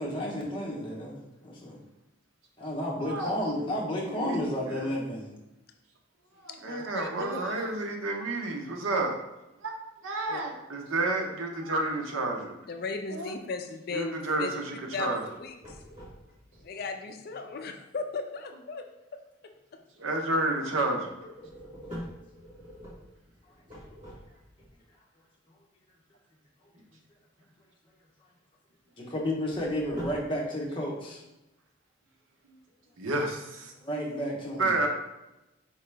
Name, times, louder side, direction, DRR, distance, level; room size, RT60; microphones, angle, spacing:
voice 1, 0.0-1.8 2.6-5.3 21.4-21.8 29.0-31.2 33.7-34.8, left 1 dB, 25° left, -3 dB, 0.9 m, -32 dB
voice 2, 3.0-3.7 4.1-4.4 4.7-4.9 6.4-9.2 9.6-9.7 10.0-12.5 13.1-13.3 13.9-15.2 20.0-21.1 33.0-33.7 34.6-34.9, right 2 dB, 90° right, 2 dB, 0.7 m, -30 dB
voice 3, 6.5-7.5 10.3-10.4 12.7-14.5 14.9-15.8 16.6-18.8, left 4 dB, 50° left, 5 dB, 0.4 m, -37 dB
sound 1, 15.5-16.6 21.1-24.7 29.2-30.4, equal, 35° right, 1.5 m, -44 dB
4.6 x 2.9 x 3.3 m, 0.94 s
head